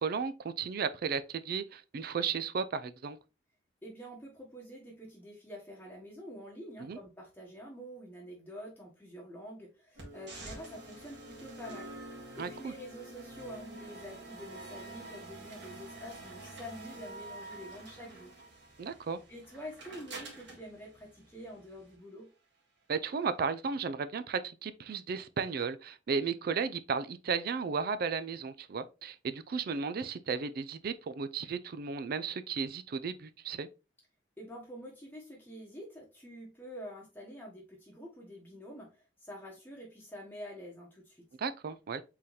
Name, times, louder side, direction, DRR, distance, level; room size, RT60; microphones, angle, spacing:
voice 1, 0.0-3.2 6.8-7.0 12.4-12.7 18.8-19.2 22.9-33.7 41.4-42.0, right 5 dB, 55° right, 0.4 m, -34 dB
voice 2, 3.8-11.9 12.3-18.4 18.8-18.9 19.3-22.3 34.4-41.3, equal, 10° left, 1.0 m, -47 dB
sound 1, 10.0-21.9, right 2 dB, 75° right, 1.8 m, -47 dB
4.2 x 3.9 x 3.1 m
head